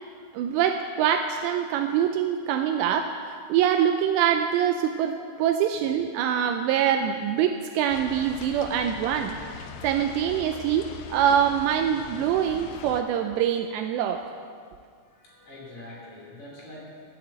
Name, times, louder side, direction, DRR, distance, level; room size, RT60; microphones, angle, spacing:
voice 1, 0.3-14.2, right 9 dB, 85° right, 6 dB, 2.6 m, -24 dB
sound 1, 7.9-13.0, left 7 dB, 85° left, 2.3 m, -41 dB
voice 2, 15.0-16.8, left 1 dB, 45° left, -5 dB, 4.0 m, -44 dB
11.5 x 8.7 x 8.0 m, 2.1 s
omnidirectional pair, 5.3 m